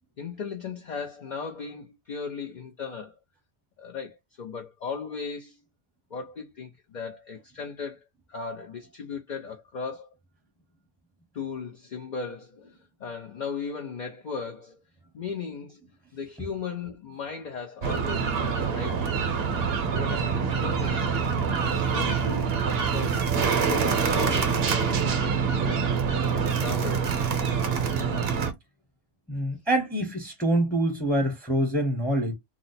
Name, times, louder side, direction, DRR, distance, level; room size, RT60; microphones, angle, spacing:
voice 1, 0.2-3.2 3.8-5.6 6.1-8.0 8.3-10.1 11.3-14.8 15.1-15.8 16.1-19.4 19.9-21.2 21.6-25.9 26.3-27.1, left 5 dB, 50° left, 0.6 m, -37 dB
Dockside Soudscape, 17.8-28.5, right 6 dB, 55° right, 0.8 m, -25 dB
voice 2, 29.3-32.3, right 1 dB, ahead, 0.7 m, -25 dB
2.8 x 2.0 x 4.0 m
omnidirectional pair, 1.3 m